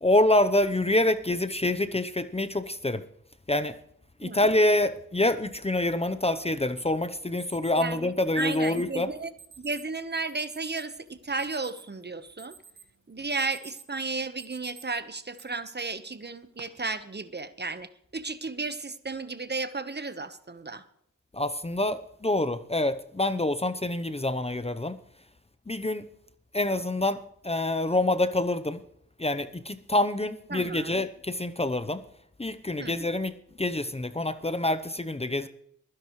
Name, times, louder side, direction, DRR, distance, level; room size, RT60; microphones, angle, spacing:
voice 1, 0.0-3.0 3.5-3.8 4.2-9.1 21.3-25.0 25.7-26.0 26.5-28.8 29.2-32.0 32.4-33.3 33.6-35.5, left 1 dB, 20° left, 0.9 m, -26 dB
Alarm, 6.8-6.9 7.4-7.9 8.4-8.9 9.4-9.9 10.4-10.8 11.2-12.0 12.4-12.9 13.2-14.0 14.4-14.8 15.4-15.5 16.3-16.6, right 6 dB, 65° right, 1.8 m, -50 dB
voice 2, 7.8-9.3 9.6-12.6 13.1-20.8 30.5-31.1 32.8-33.0, right 3 dB, 35° right, 1.2 m, -34 dB
22.5 x 10.5 x 3.2 m
cardioid pair, 50°, 31 cm